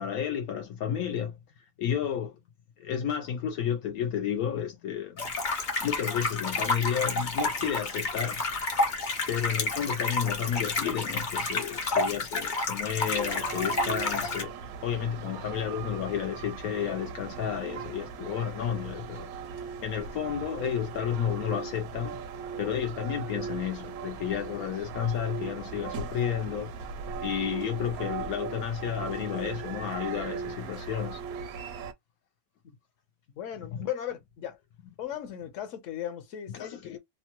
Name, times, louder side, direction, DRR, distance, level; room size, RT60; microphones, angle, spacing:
voice 1, 0.0-1.4 1.8-2.3 2.8-5.2 5.8-8.4 9.3-14.5 14.8-19.3 19.8-22.2 22.6-26.7 27.2-31.2 33.7-33.8 36.5-37.0, left 9 dB, 80° left, 1.1 m, -31 dB
sound 1, 5.2-14.4, left 3 dB, 40° left, 0.7 m, -30 dB
sound 2, 13.1-31.9, right 6 dB, 85° right, 1.1 m, -39 dB
voice 2, 33.3-34.6 35.0-37.0, left 11 dB, 60° left, 1.1 m, -37 dB
3.0 x 2.1 x 2.9 m
omnidirectional pair, 1.5 m